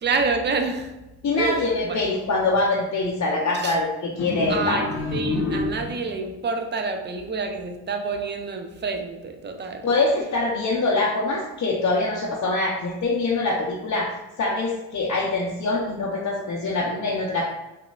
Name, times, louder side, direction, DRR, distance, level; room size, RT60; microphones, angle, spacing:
voice 1, 0.0-0.9 1.4-1.6 1.9-2.0 3.5-3.8 4.5-9.8, right 4 dB, 25° right, 5 dB, 0.5 m, -28 dB
voice 2, 1.2-4.8 9.8-14.1 14.4-17.4, left 3 dB, 40° left, -4 dB, 0.7 m, -24 dB
sound 1, 4.2-6.2, left 3 dB, 85° left, 0.6 m, -28 dB
4.0 x 2.3 x 2.3 m, 1.0 s
hypercardioid pair, 50°, 42 cm